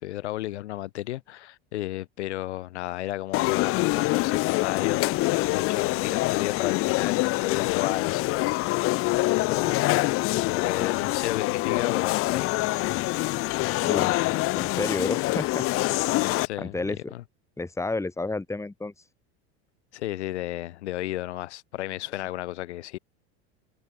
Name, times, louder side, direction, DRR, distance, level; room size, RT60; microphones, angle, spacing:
voice 1, 0.0-8.5 9.4-12.5 16.1-16.8 17.1-17.2 19.9-23.0, left 15 dB, 85° left, 2.4 m, -33 dB
sound 1, 3.3-16.5, left 20 dB, 40° left, 0.4 m, -25 dB
voice 2, 13.8-14.3 14.6-15.6 16.0-16.2 16.6-17.1 17.6-18.9, left 2 dB, 10° left, 2.3 m, -31 dB
hypercardioid pair, 95°, 33 cm